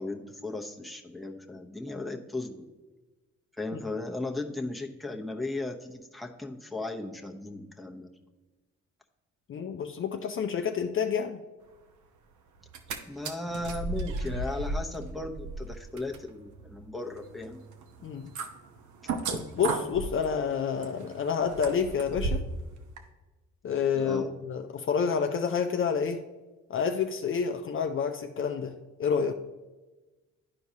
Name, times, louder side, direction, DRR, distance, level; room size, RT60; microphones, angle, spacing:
voice 1, 0.0-2.7 3.5-8.1 13.1-17.6 19.0-19.1 23.9-24.3, left 2 dB, ahead, 1 dB, 0.8 m, -36 dB
voice 2, 9.5-11.4 18.0-18.3 19.3-22.5 23.6-26.2 26.7-29.3, left 6 dB, 45° left, 6 dB, 0.5 m, -29 dB
sound 1, 12.6-13.0 13.2-22.6 23.0-23.1, right 3 dB, 70° right, 0.9 m, -35 dB
11.5 x 4.6 x 2.8 m, 1.2 s
cardioid pair, 90°, 30 cm